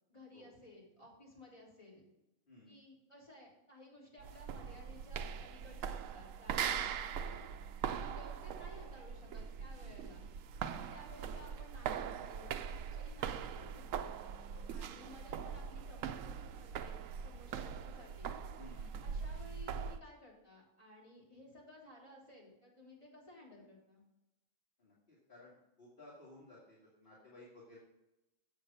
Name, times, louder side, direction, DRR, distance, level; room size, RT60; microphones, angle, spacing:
voice 1, 0.1-2.0 2.6-7.4 8.0-10.3 10.7-14.1 14.7-18.4 19.0-24.0, left 1 dB, 20° left, -6 dB, 3.8 m, -57 dB
sound 1, 4.2-20.0, right 7 dB, 80° right, 0.9 m, -41 dB
voice 2, 18.6-18.9 24.8-27.8, left 2 dB, 40° left, -7 dB, 2.3 m, -57 dB
7.8 x 7.2 x 5.4 m, 0.93 s
omnidirectional pair, 1.4 m